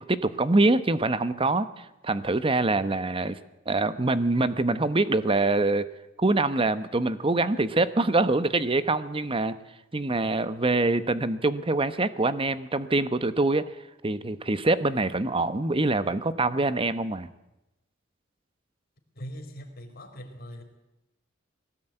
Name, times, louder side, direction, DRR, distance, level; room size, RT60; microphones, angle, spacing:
voice 1, 0.0-3.4 3.7-5.9 6.2-9.5 9.9-13.6 14.0-17.3, right 2 dB, 30° right, 13 dB, 1.0 m, -25 dB
voice 2, 19.1-20.6, equal, 50° left, 3 dB, 4.3 m, -41 dB
21.0 x 17.5 x 9.0 m, 0.94 s
head